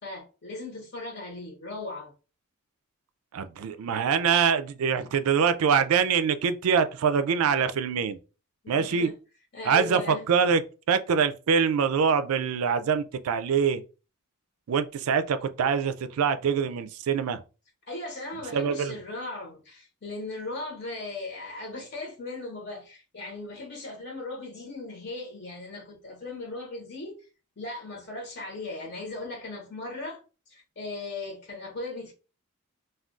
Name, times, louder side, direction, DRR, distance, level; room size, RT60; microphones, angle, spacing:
voice 1, 0.0-2.1 8.6-9.1 9.5-10.3 17.9-27.3 27.6-32.1, left 2 dB, 50° left, 0.9 m, -38 dB
voice 2, 3.3-8.2 8.7-9.1 9.7-10.6 10.9-13.8 14.7-17.4 18.5-19.0, right 6 dB, 80° right, 0.3 m, -24 dB
2.3 x 2.3 x 3.7 m
head